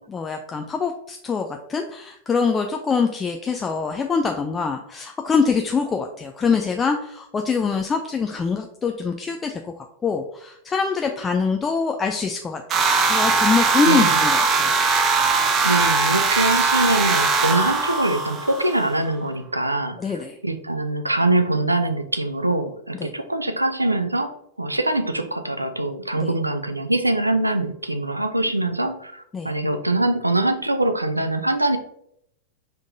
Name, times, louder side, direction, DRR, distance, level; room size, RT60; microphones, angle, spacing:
voice 1, 0.0-14.7 20.0-20.4 23.0-23.1 26.1-26.3 29.3-29.5, left 5 dB, 20° left, 4 dB, 0.4 m, -24 dB
sound 1, 12.7-18.9, right 4 dB, 30° right, 0.6 m, -20 dB
voice 2, 13.8-14.2 15.6-31.8, right 2 dB, 85° right, 9 dB, 0.4 m, -23 dB
5.4 x 3.6 x 2.5 m, 0.73 s
figure-of-eight pair, 90°, 0 cm